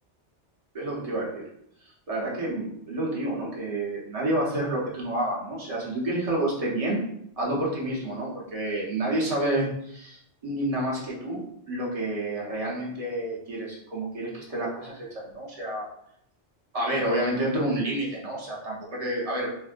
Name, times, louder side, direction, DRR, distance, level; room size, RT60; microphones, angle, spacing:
voice 1, 0.7-1.5 2.1-7.0 7.4-15.9 16.7-19.5, right 1 dB, 35° right, -4 dB, 0.8 m, -29 dB
4.3 x 2.1 x 2.4 m, 0.73 s
omnidirectional pair, 1.2 m